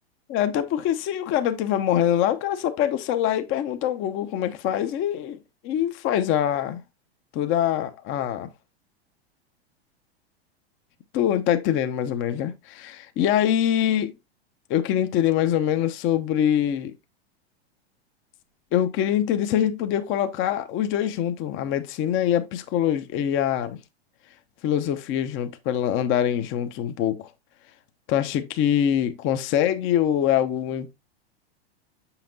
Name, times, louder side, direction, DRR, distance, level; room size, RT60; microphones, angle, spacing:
voice 1, 0.3-5.4 5.6-6.8 7.3-8.5 11.1-14.1 14.7-16.9 18.7-23.8 24.6-27.3 28.1-30.9, left 10 dB, 40° left, 0.9 m, -24 dB
6.8 x 5.8 x 2.7 m
hypercardioid pair, 105°, 32 cm